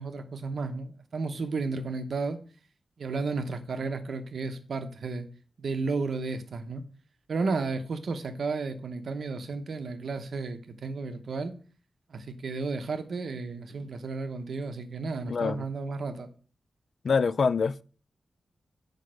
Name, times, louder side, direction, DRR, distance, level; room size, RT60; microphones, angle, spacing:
voice 1, 0.0-2.4 3.0-5.3 5.6-6.8 7.3-11.6 12.1-16.3, right 4 dB, 65° right, 0.9 m, -33 dB
voice 2, 15.3-15.7 17.0-17.8, left 5 dB, 55° left, 0.3 m, -25 dB
6.5 x 5.1 x 6.3 m
wide cardioid pair, 125°, 0 cm